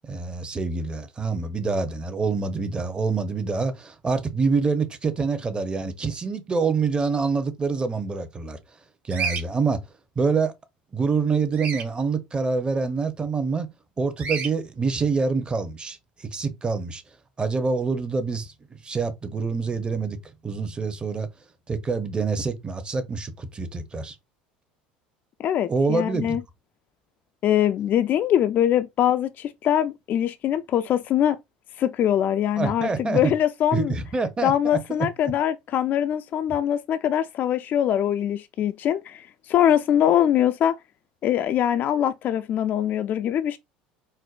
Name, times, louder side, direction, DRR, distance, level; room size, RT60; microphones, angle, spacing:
voice 1, 0.1-8.6 9.0-9.8 10.2-10.5 10.9-13.7 14.0-17.0 17.4-18.5 18.8-20.2 20.4-21.3 21.7-24.2 25.7-26.4 32.6-33.3 33.7-34.8, right 4 dB, 20° right, 0.8 m, -26 dB
Bird vocalization bird call bird song, 9.1-9.4 11.5-11.9 14.2-14.5, right 5 dB, 40° right, 1.0 m, -29 dB
voice 2, 25.4-26.4 27.4-31.4 31.8-33.9 34.4-40.7 41.2-43.6, left 10 dB, 45° left, 0.3 m, -23 dB
4.4 x 2.1 x 2.4 m
hypercardioid pair, 80°, 4 cm